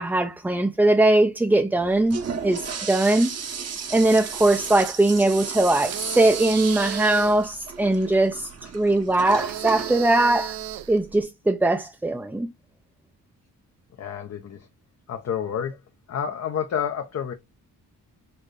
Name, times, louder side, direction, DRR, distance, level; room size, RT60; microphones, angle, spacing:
voice 1, 0.0-2.2 2.4-3.3 3.9-8.5 8.7-10.6 10.9-12.5, right 2 dB, 5° right, 0.3 m, -20 dB
Toilet flush, 1.8-11.2, right 6 dB, 45° right, 0.8 m, -35 dB
sound 1, 5.8-7.5 9.3-11.0, right 10 dB, 85° right, 0.6 m, -34 dB
voice 2, 14.0-14.7 15.1-15.8 16.1-17.3, left 8 dB, 50° left, 0.6 m, -29 dB
4.3 x 2.6 x 3.1 m
cardioid pair, 105°, 34 cm